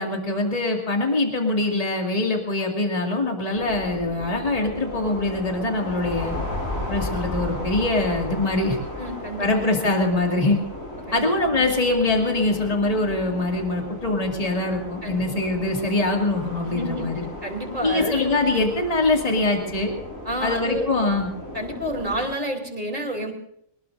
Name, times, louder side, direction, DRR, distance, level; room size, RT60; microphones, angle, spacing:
voice 1, 0.0-6.4 6.9-8.8 9.4-10.6 11.1-17.2 17.8-19.9 20.4-21.3, left 2 dB, 25° left, 1 dB, 2.4 m, -23 dB
sound 1, 3.5-22.2, left 1 dB, 70° left, 5.7 m, -35 dB
voice 2, 9.0-9.6 11.1-11.6 15.0-15.2 16.6-18.3 20.2-20.8 21.5-23.3, equal, 35° right, 1 dB, 3.8 m, -30 dB
23.5 x 20.0 x 2.6 m, 0.70 s
omnidirectional pair, 1.5 m